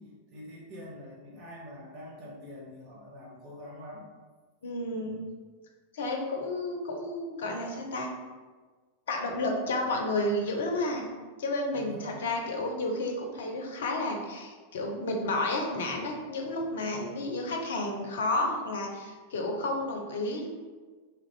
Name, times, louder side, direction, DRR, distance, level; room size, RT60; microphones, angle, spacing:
voice 1, 0.0-4.1 11.7-12.2 16.4-17.3, left 1 dB, 40° right, -5 dB, 1.0 m, -46 dB
voice 2, 4.6-5.2 5.9-8.1 9.1-11.1 11.4-20.5, left 2 dB, 60° left, 2 dB, 0.5 m, -31 dB
2.9 x 2.4 x 3.2 m, 1.4 s
figure-of-eight pair, 90°, 0 cm